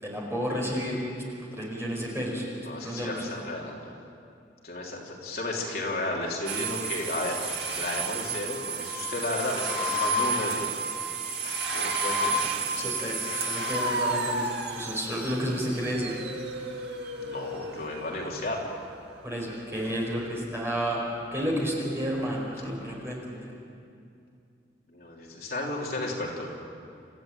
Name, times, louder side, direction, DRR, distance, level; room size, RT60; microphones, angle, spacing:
voice 1, 0.0-3.4 12.7-16.2 19.2-21.0 21.3-23.5, equal, 15° right, -3 dB, 5.3 m, -31 dB
voice 2, 2.7-3.9 4.6-7.4 7.7-10.7 11.4-12.9 17.2-18.7 24.9-26.5, left 2 dB, 55° left, -2 dB, 3.3 m, -33 dB
sound 1, 6.5-18.2, right 2 dB, 70° right, 2.1 m, -31 dB
29.0 x 15.0 x 9.1 m, 2.5 s
head